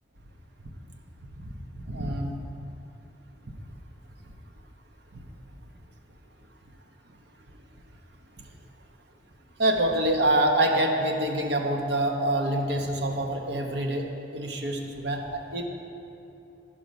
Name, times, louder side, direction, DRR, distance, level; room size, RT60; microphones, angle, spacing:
voice 1, 1.9-2.3 9.6-14.1 14.3-15.7, right 1 dB, 70° right, 2 dB, 1.0 m, -26 dB
11.5 x 5.7 x 5.2 m, 2.8 s
head